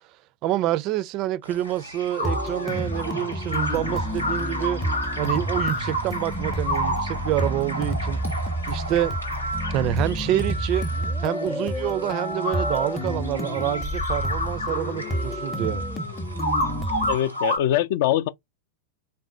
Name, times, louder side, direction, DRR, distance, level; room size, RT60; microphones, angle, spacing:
voice 1, 0.4-4.8 5.2-8.2 8.7-9.2 9.7-10.9 11.2-15.8, right 13 dB, 40° right, 0.4 m, -27 dB
sound 1, 1.5-17.6, equal, 85° left, 0.9 m, -31 dB
sound 2, 2.2-17.2, equal, 15° left, 0.7 m, -30 dB
voice 2, 17.1-18.3, left 12 dB, 55° left, 0.3 m, -23 dB
3.9 x 2.1 x 3.5 m
figure-of-eight pair, 90°, 0 cm